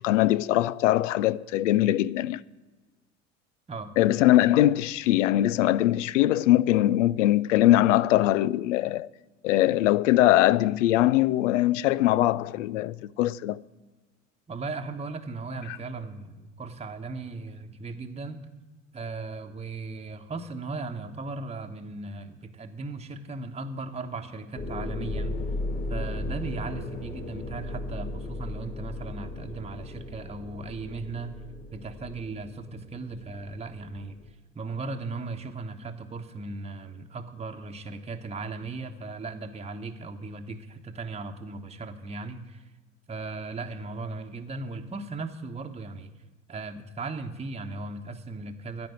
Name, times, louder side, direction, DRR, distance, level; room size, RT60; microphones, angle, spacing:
voice 1, 0.0-2.4 4.0-9.1 9.4-13.6 15.7-15.8, left 14 dB, 75° left, 0.5 m, -22 dB
voice 2, 14.5-18.4 18.9-25.4 25.9-31.4 31.7-42.6 43.1-46.1 46.5-48.9, right 3 dB, 15° right, 1.1 m, -37 dB
sound 1, 24.5-34.3, left 2 dB, 25° left, 1.9 m, -36 dB
15.5 x 5.3 x 9.2 m
figure-of-eight pair, 70°, 38 cm